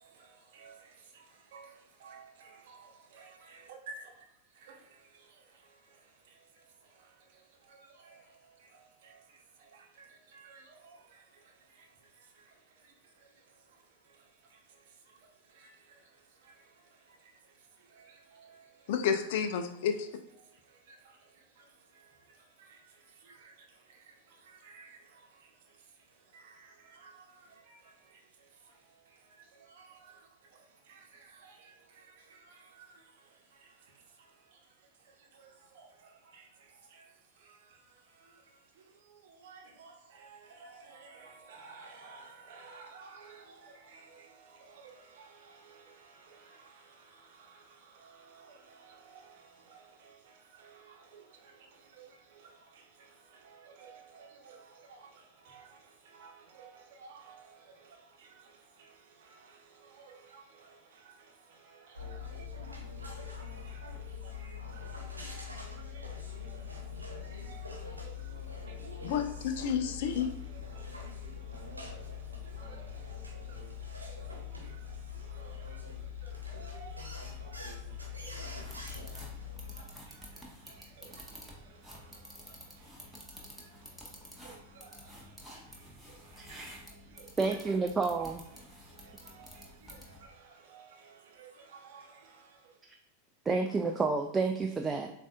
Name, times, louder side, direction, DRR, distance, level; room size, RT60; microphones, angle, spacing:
voice 1, 0.0-19.2 20.4-69.5 70.1-88.0 88.5-92.8, right 4 dB, 55° right, 0.9 m, -57 dB
voice 2, 18.9-20.1 69.0-70.3, left 7 dB, 50° left, 0.5 m, -30 dB
sound 1, 61.9-79.8, left 6 dB, 80° right, 1.0 m, -42 dB
sound 2, 78.6-90.3, equal, ahead, 1.0 m, -51 dB
voice 3, 86.4-86.8 87.4-88.4 93.5-95.1, right 4 dB, 15° right, 0.3 m, -30 dB
7.2 x 2.5 x 2.4 m
figure-of-eight pair, 90°, 0 cm